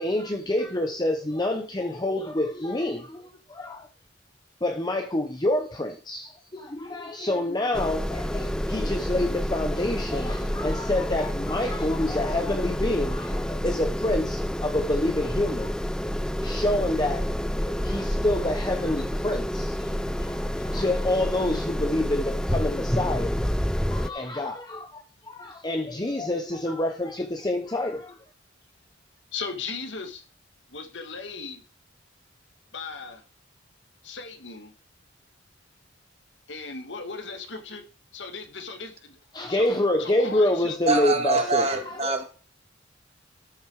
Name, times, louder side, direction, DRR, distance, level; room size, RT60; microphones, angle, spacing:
voice 1, 0.0-3.9 4.6-16.1 16.4-17.3 17.5-19.9 20.2-23.5 23.9-28.2 39.3-42.2, left 1 dB, 20° left, 1.0 m, -27 dB
sound 1, 7.7-24.1, equal, 5° left, 0.4 m, -29 dB
voice 2, 29.3-30.3 30.7-31.6 32.7-33.2 34.0-34.7 36.5-37.9 38.1-39.2 39.5-41.0, left 4 dB, 70° left, 1.8 m, -37 dB
voice 3, 40.9-42.2, right 3 dB, 35° right, 1.9 m, -24 dB
13.0 x 6.3 x 4.8 m
head